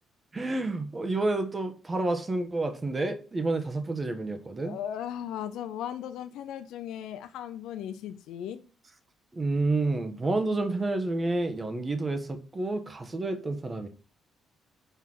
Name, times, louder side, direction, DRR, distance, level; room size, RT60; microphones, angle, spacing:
voice 1, 0.3-4.8 9.3-13.9, right 2 dB, 25° right, 1.2 m, -29 dB
voice 2, 4.6-8.6, left 10 dB, 85° left, 0.6 m, -37 dB
5.7 x 4.6 x 6.1 m
cardioid pair, 90°, 0 cm